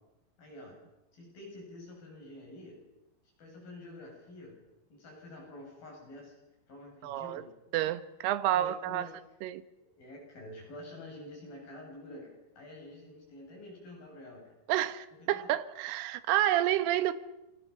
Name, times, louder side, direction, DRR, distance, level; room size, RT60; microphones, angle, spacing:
voice 1, 0.4-0.8 1.1-2.8 3.4-4.6 4.9-6.4 6.7-7.5 8.5-9.2 10.0-14.5 15.3-15.5, left 1 dB, 50° left, 9.8 m, -48 dB
voice 2, 7.0-7.4 7.7-9.1 9.4-9.6 14.7-17.1, right 13 dB, 70° right, 2.9 m, -29 dB
29.0 x 24.0 x 7.4 m
omnidirectional pair, 5.5 m